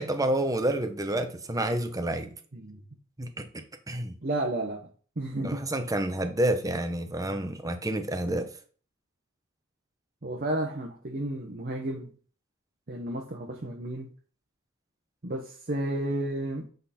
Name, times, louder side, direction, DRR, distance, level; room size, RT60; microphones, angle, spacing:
voice 1, 0.0-2.3 3.2-3.5 3.9-4.2 5.4-8.5, right 1 dB, 15° right, 0.8 m, -29 dB
voice 2, 4.2-4.9 5.2-5.7 10.2-12.1 12.9-14.1 15.2-16.7, right 1 dB, 45° right, 0.9 m, -32 dB
7.6 x 4.0 x 4.2 m
head